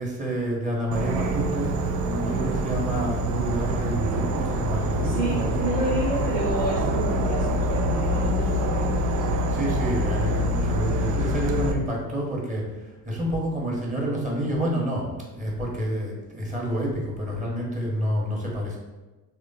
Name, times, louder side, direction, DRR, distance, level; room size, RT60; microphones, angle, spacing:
voice 1, 0.0-1.7 2.0-5.6 9.5-12.7 13.0-18.8, equal, 15° right, -3 dB, 1.0 m, -28 dB
Insect / Frog, 0.9-11.7, right 1 dB, 40° right, 0.4 m, -25 dB
voice 2, 5.0-9.2, right 1 dB, 15° left, -4 dB, 0.8 m, -30 dB
3.2 x 2.2 x 4.0 m, 1.1 s
figure-of-eight pair, 55°, 49 cm